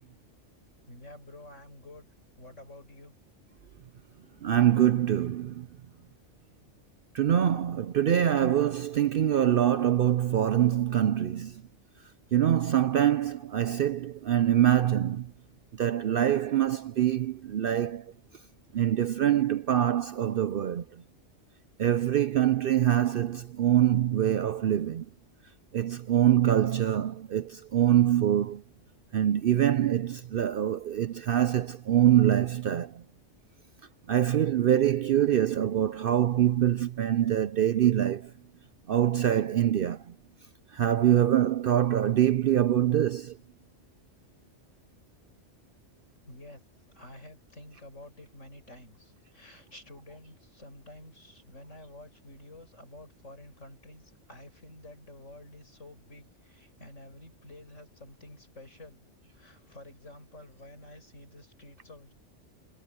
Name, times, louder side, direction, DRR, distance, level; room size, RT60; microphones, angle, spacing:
voice 1, 0.9-2.1 2.4-3.1 46.2-46.6 46.9-59.0 59.3-62.1, left 1 dB, 85° left, 7.9 m, -50 dB
voice 2, 4.4-5.7 7.1-11.6 12.3-15.3 15.8-18.1 18.7-20.8 21.8-25.0 25.7-28.6 29.1-33.0 34.1-38.3 38.9-40.0 40.7-43.4, right 11 dB, 60° right, 0.7 m, -24 dB
omnidirectional pair, 1.3 m